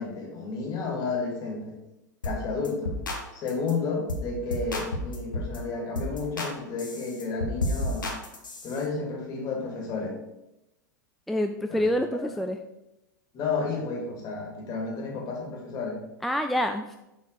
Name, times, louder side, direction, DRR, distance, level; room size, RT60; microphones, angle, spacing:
voice 1, 0.0-1.8 2.2-3.0 3.3-8.1 8.6-10.2 11.7-11.8 13.3-16.0, left 4 dB, 40° left, 0 dB, 2.3 m, -31 dB
sound 1, 2.2-2.4 2.6-3.2 3.5-3.7 4.1-4.3 4.5-5.6 6.0-6.5 6.8-8.8, left 1 dB, 85° left, 1.4 m, -31 dB
voice 2, 11.3-12.6 16.2-17.0, left 1 dB, ahead, 5 dB, 0.3 m, -27 dB
6.5 x 4.1 x 4.8 m, 0.92 s
hypercardioid pair, 95°, 10 cm